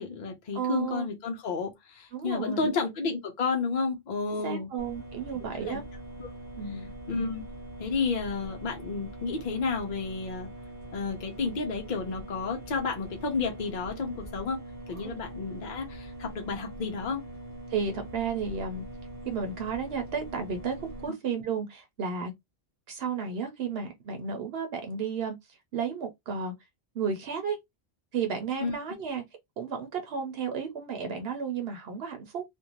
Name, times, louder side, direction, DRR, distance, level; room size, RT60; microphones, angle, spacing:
voice 1, 0.0-4.7 5.7-5.8 6.2-6.3 6.7-6.8 7.1-7.4 7.8-10.5 10.9-14.6 14.9-17.2 28.6-28.8, left 4 dB, 55° left, 0.7 m, -31 dB
voice 2, 0.5-1.1 2.1-2.7 4.4-5.8 6.6-6.9 15.0-15.1 17.7-18.8 19.2-20.8 21.0-22.3 22.9-25.4 25.7-26.5 26.9-27.6 28.1-29.2 29.6-32.4, right 6 dB, 75° right, 0.9 m, -32 dB
sound 1, 4.8-21.1, right 1 dB, 15° right, 1.2 m, -43 dB
2.5 x 2.2 x 2.8 m
omnidirectional pair, 1.0 m